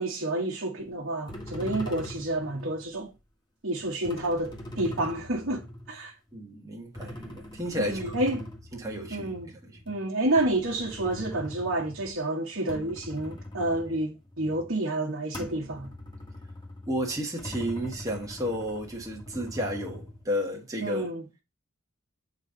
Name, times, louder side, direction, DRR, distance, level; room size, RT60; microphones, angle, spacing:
voice 1, 0.0-3.1 3.6-6.1 7.8-8.5 9.1-9.6 9.9-15.9 20.8-21.2, right 1 dB, 60° right, 1.3 m, -29 dB
sound 1, 0.8-0.9 1.3-2.9 3.8-6.3 7.0-12.2 12.5-14.8 15.3-20.3, left 1 dB, 20° left, 1.4 m, -42 dB
voice 2, 6.3-8.1 8.7-9.8 16.9-21.1, equal, 15° right, 1.4 m, -32 dB
8.3 x 4.0 x 3.8 m
head